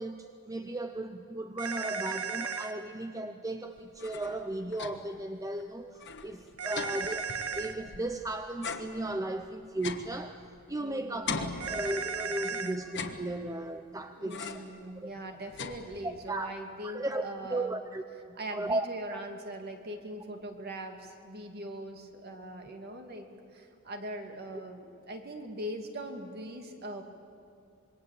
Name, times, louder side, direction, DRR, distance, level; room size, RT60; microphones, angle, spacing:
voice 1, 0.0-7.2 7.5-10.4 10.7-14.6 15.0-15.1 16.0-16.5 16.8-17.2 17.5-19.2, right 1 dB, 15° right, 7 dB, 0.7 m, -36 dB
sound 1, 1.6-2.7 6.6-7.7 11.6-12.8, right 6 dB, 80° right, 1.5 m, -35 dB
sound 2, 3.8-5.2 5.6-5.7 5.9-8.2 8.6-10.8 11.3-12.3 12.8-13.7 14.3-14.8 15.2-16.3, left 5 dB, 50° left, 1.5 m, -41 dB
voice 2, 10.8-11.8 14.2-17.8 18.3-27.0, right 1 dB, 45° right, 4 dB, 2.6 m, -41 dB
26.0 x 23.0 x 8.6 m, 2.6 s
head